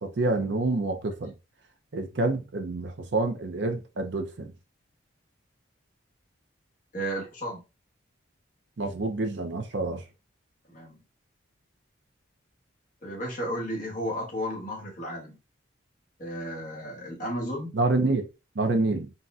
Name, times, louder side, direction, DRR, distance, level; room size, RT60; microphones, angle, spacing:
voice 1, 0.0-1.3 1.9-4.5 8.8-10.0 17.7-18.3 18.5-19.1, right 2 dB, 60° right, 0.6 m, -27 dB
voice 2, 6.9-7.6 10.7-11.0 13.0-15.4 16.2-17.7, equal, 40° left, 1.2 m, -33 dB
4.0 x 2.2 x 2.4 m
head